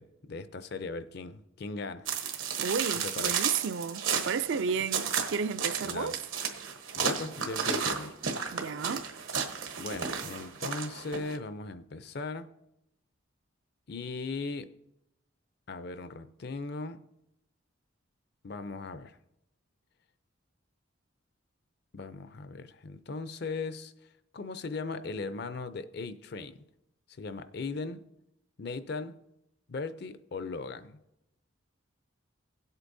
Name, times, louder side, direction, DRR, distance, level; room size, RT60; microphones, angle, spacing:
voice 1, 0.0-2.1 3.0-3.3 5.8-6.2 7.0-8.2 9.8-12.5 13.9-14.7 15.7-17.0 18.4-19.2 21.9-23.9 24.3-26.6 27.2-28.0 28.6-29.2 29.7-31.0, left 3 dB, 50° left, 0.5 m, -38 dB
sound 1, 2.1-11.4, right 6 dB, 80° right, 1.1 m, -33 dB
voice 2, 2.6-6.1 8.5-9.1, right 5 dB, 60° right, 0.4 m, -32 dB
17.5 x 8.1 x 2.7 m
head